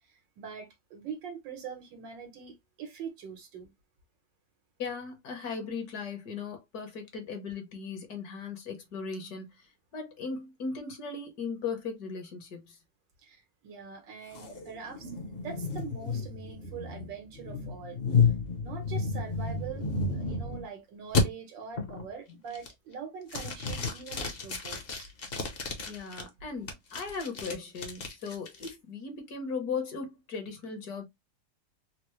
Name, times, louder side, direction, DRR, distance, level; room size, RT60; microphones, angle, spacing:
voice 1, 0.1-3.7 13.2-18.3 18.6-19.9 20.1-25.1, right 6 dB, 90° right, 1.8 m, -43 dB
voice 2, 4.8-9.7 9.9-12.8 25.8-31.1, left 5 dB, 65° left, 1.4 m, -37 dB
sound 1, 14.3-20.7 21.1-21.2 21.8-22.1 22.5-22.9 23.3-26.2 26.7-28.7, left 4 dB, 45° left, 0.8 m, -31 dB
4.3 x 2.0 x 3.0 m
omnidirectional pair, 1.9 m